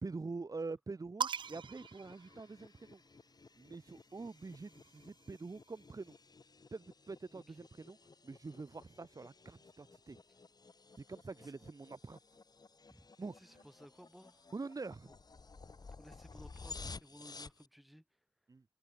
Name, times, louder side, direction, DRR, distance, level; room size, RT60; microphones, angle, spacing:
voice 1, 0.0-3.0 3.6-6.1 6.7-8.0 8.2-10.2 11.1-12.2 13.2-13.3 14.5-15.1 18.5-18.6, right 3 dB, 45° right, 1.4 m, -45 dB
sound 1, 1.2-3.0 4.1-5.8, right 7 dB, 70° right, 0.4 m, -43 dB
sound 2, 1.4-17.7, left 4 dB, 50° left, 2.6 m, -55 dB
voice 2, 7.3-7.6 10.3-10.4 11.4-11.5 12.9-14.5 15.1-15.2 16.0-18.2, equal, ahead, 6.1 m, -59 dB
cardioid pair, 55°, 8 cm